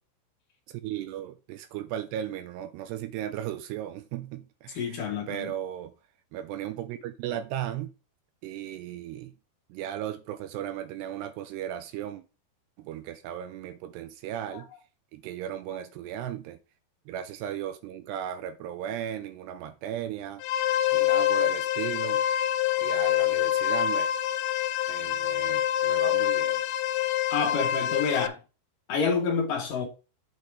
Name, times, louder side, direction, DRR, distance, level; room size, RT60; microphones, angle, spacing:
voice 1, 0.7-5.9 6.3-7.9 8.4-9.3 9.7-12.2 12.8-14.7 15.1-16.6 17.1-20.4 20.9-22.2 22.8-24.1 24.9-26.6, right 11 dB, 85° right, 2.6 m, -36 dB
voice 2, 4.8-5.5 14.5-14.6 27.3-28.4 28.9-29.9, left 5 dB, 60° left, 2.7 m, -28 dB
sound 1, 20.4-28.3, left 12 dB, 85° left, 3.1 m, -26 dB
8.1 x 5.2 x 4.8 m
omnidirectional pair, 5.2 m